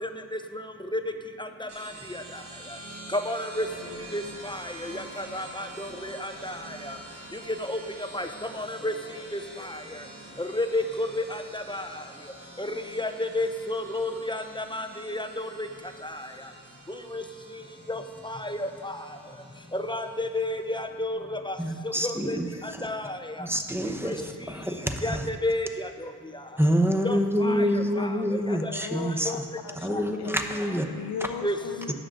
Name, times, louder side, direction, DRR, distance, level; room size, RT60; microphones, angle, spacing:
voice 1, 0.0-0.6 0.9-1.0 1.4-2.2 3.1-3.7 4.1-7.0 7.6-8.3 8.5-8.9 9.3-10.0 10.4-11.9 12.6-15.7 16.0-16.3 16.9-17.2 17.9-19.0 19.7-21.6 21.8-22.4 22.6-23.5 24.0-24.2 25.0-26.1 27.0-28.7 29.3-29.4 31.4-31.6, left 1 dB, 10° left, 7 dB, 0.5 m, -32 dB
sound 1, 1.7-20.8, right 1 dB, 90° right, 2.2 m, -46 dB
voice 2, 21.6-22.9 23.4-25.2 26.6-29.3 29.7-30.9 31.9-32.0, equal, 5° right, 4 dB, 0.9 m, -27 dB
voice 3, 27.4-28.2 28.5-29.9 30.2-30.3 30.9-31.9, left 7 dB, 85° left, 8 dB, 0.6 m, -37 dB
17.0 x 6.8 x 3.8 m, 2.2 s
wide cardioid pair, 80°, 38 cm